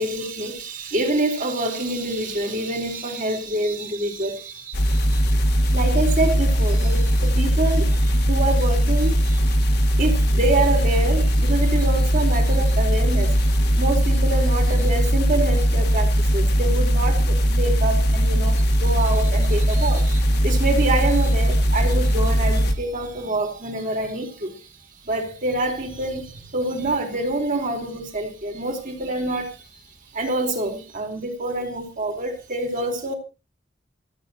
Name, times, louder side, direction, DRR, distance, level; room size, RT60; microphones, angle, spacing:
voice 1, 0.0-24.7 25.0-33.1, right 2 dB, 45° right, 4.0 m, -26 dB
sound 1, 4.7-22.7, equal, 60° left, 1.7 m, -19 dB
27.5 x 9.4 x 3.0 m
head